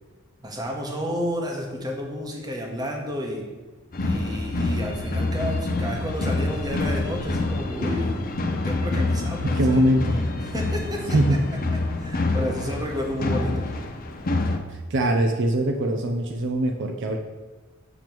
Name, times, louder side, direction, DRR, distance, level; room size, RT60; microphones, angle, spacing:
voice 1, 0.4-3.5 4.0-8.2 8.5-9.8 10.4-11.4 11.7-13.7, equal, 20° right, 0 dB, 1.0 m, -31 dB
sound 1, 3.9-14.6, left 2 dB, 45° left, 0.6 m, -26 dB
voice 2, 9.4-10.2 11.1-11.4 14.7-17.2, right 1 dB, 60° right, 4 dB, 0.5 m, -22 dB
7.1 x 3.0 x 5.9 m, 1.3 s
head